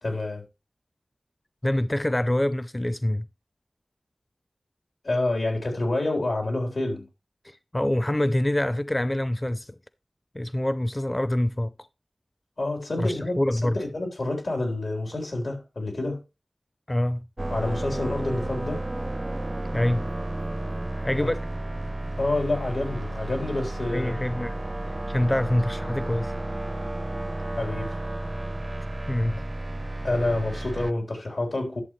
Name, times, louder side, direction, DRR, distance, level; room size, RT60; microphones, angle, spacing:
voice 1, 0.0-0.4 5.0-7.1 12.6-16.2 17.5-18.9 21.2-21.3 22.1-24.2 27.6-28.0 30.0-31.8, left 2 dB, 85° left, 3.8 m, -28 dB
voice 2, 1.6-3.3 7.4-9.8 10.3-11.9 13.0-13.8 16.9-17.3 19.7-20.1 21.0-21.4 23.9-24.5 25.1-26.4 29.1-29.4, left 1 dB, 30° left, 0.5 m, -25 dB
sound 1, 17.4-30.9, right 1 dB, 35° right, 0.4 m, -32 dB
11.5 x 7.0 x 3.2 m
wide cardioid pair, 45°, 0 cm